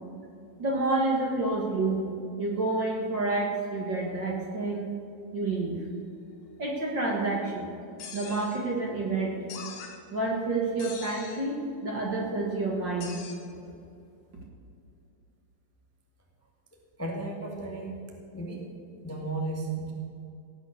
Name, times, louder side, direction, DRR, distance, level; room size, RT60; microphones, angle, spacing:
voice 1, 0.6-2.0 2.4-4.9 5.3-5.8 6.6-7.8 8.1-9.4 10.1-13.1, right 2 dB, 40° right, -2 dB, 1.8 m, -29 dB
sound 1, 8.0-8.6 9.5-10.0 10.8-11.4 13.0-13.4, left 6 dB, 85° left, 3.7 m, -42 dB
voice 2, 17.0-18.0 18.3-18.7 19.0-19.9, right 2 dB, 10° left, -1 dB, 1.0 m, -34 dB
17.5 x 9.8 x 6.6 m, 2.5 s
omnidirectional pair, 4.2 m